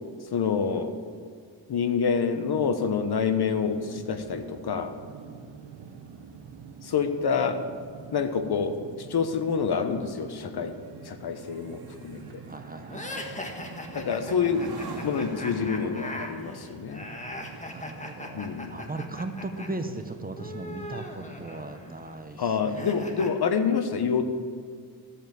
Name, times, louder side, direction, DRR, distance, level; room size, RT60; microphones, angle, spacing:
voice 1, 0.3-0.9 1.7-4.9 6.8-7.7 8.1-10.7 11.0-12.2 13.9-14.7 15.0-17.1 18.2-18.9 22.4-24.2, left 6 dB, 60° left, 8 dB, 1.1 m, -27 dB
sound 1, 3.5-21.6, right 6 dB, 90° right, 1.0 m, -47 dB
voice 2, 5.2-5.6 12.5-13.3 17.7-23.2, right 2 dB, 20° right, 7 dB, 0.9 m, -38 dB
sound 2, 8.5-19.9 20.3-20.6, right 3 dB, 55° right, 2.7 m, -46 dB
sound 3, 12.9-19.7 19.9-23.3, left 1 dB, 15° left, 1.5 m, -40 dB
14.5 x 5.4 x 7.7 m, 2.1 s
cardioid pair, 75°, 43 cm